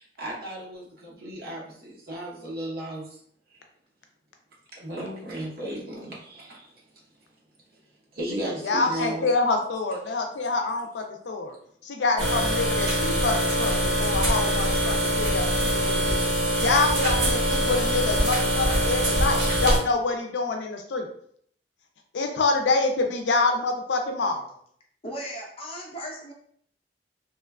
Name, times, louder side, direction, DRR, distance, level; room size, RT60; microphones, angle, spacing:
voice 1, 0.0-3.2 4.7-6.7 8.1-9.3 13.7-13.8 14.5-14.6, right 1 dB, 60° right, -5 dB, 0.8 m, -35 dB
voice 2, 8.6-11.6 11.8-16.2 16.6-21.1 22.1-24.5, left 3 dB, 85° left, 4 dB, 0.4 m, -26 dB
sound 1, 12.2-19.8, equal, 80° right, 1.0 m, -23 dB
voice 3, 25.0-26.3, equal, 35° left, -2 dB, 0.6 m, -36 dB
2.9 x 2.2 x 2.2 m, 0.64 s
head